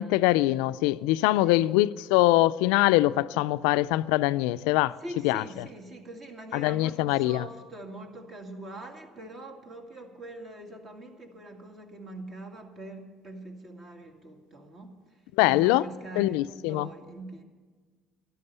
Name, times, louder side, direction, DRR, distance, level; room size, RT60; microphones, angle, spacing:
voice 1, 0.0-5.0 5.2-5.4 6.5-7.4 15.4-15.8 16.2-16.9, left 17 dB, 85° left, 0.3 m, -23 dB
voice 2, 5.0-17.4, right 2 dB, 40° right, 2.1 m, -43 dB
13.0 x 11.5 x 6.8 m
cardioid pair, 105°, 0 cm